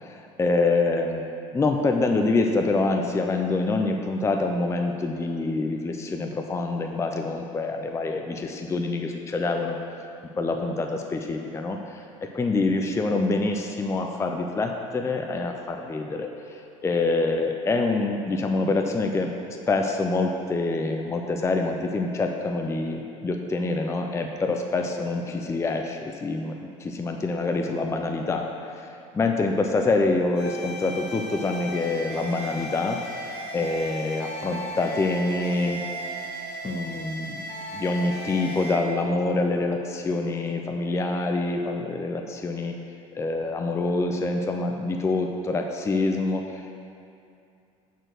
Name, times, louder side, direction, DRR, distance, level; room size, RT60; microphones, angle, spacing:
voice 1, 0.0-9.8 10.4-12.0 12.3-19.3 19.7-26.5 26.8-28.9 29.1-33.0 33.5-35.8 36.6-37.4 37.7-42.7 43.2-46.7, left 3 dB, 15° left, 3 dB, 0.5 m, -26 dB
sound 1, 30.3-38.7, right 1 dB, 65° left, 1.6 m, -36 dB
6.4 x 4.5 x 6.5 m, 2.5 s
supercardioid pair, 95°, 17 cm